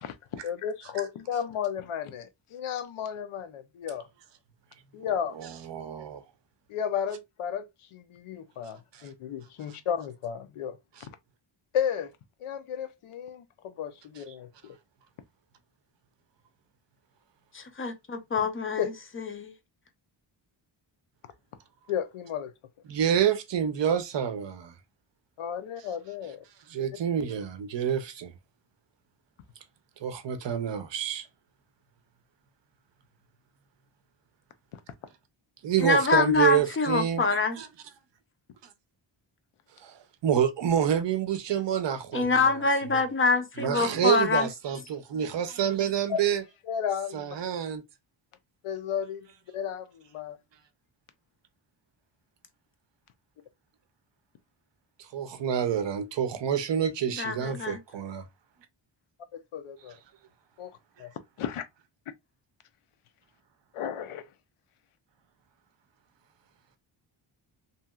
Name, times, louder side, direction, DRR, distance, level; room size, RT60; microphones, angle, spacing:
voice 1, 0.0-4.1 4.9-5.4 6.7-7.6 7.9-10.8 11.7-12.1 12.4-14.8 18.8-18.9 21.9-22.5 25.4-26.4 46.1-46.2 46.7-47.4 48.6-49.3 49.5-50.4 59.3-59.9 60.6-61.1 61.4-61.6 63.7-64.2, left 8 dB, 90° left, 0.6 m, -33 dB
voice 2, 5.3-6.2 8.9-9.1 22.9-24.7 26.7-28.3 30.0-31.2 35.6-37.7 39.8-42.6 43.6-46.4 47.1-47.8 55.0-58.2, right 9 dB, 60° right, 0.6 m, -28 dB
voice 3, 17.5-19.5 35.8-37.6 42.1-44.5 57.2-57.8, left 4 dB, 25° left, 0.4 m, -25 dB
2.9 x 2.8 x 2.3 m
wide cardioid pair, 175°, 49 cm